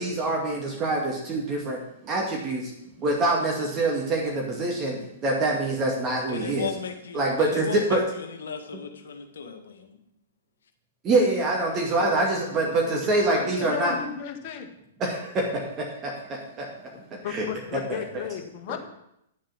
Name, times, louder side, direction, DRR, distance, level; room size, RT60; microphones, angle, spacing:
voice 1, 0.0-1.8 2.0-2.7 3.0-6.7 7.1-8.0 8.7-8.8 11.0-14.0 15.0-16.7 17.1-17.5 17.9-18.2, right 2 dB, 25° right, -1 dB, 2.3 m, -25 dB
voice 2, 6.3-10.0, left 6 dB, 60° left, 6 dB, 1.7 m, -36 dB
voice 3, 12.6-14.7 17.2-18.8, left 9 dB, 40° left, 4 dB, 1.7 m, -34 dB
10.0 x 7.5 x 6.4 m, 0.79 s
figure-of-eight pair, 110°, 0 cm